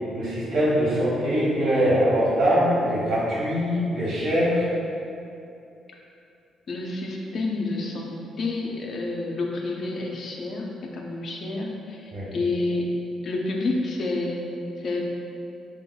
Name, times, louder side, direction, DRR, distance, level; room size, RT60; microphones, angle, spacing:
voice 1, 0.1-4.7 12.1-12.3, equal, 75° right, -7 dB, 1.4 m, -22 dB
voice 2, 6.7-12.9 13.2-14.5 14.8-15.1, left 2 dB, 55° left, 0 dB, 0.6 m, -29 dB
6.6 x 2.3 x 2.3 m, 2.6 s
cardioid pair, 90°, 0 cm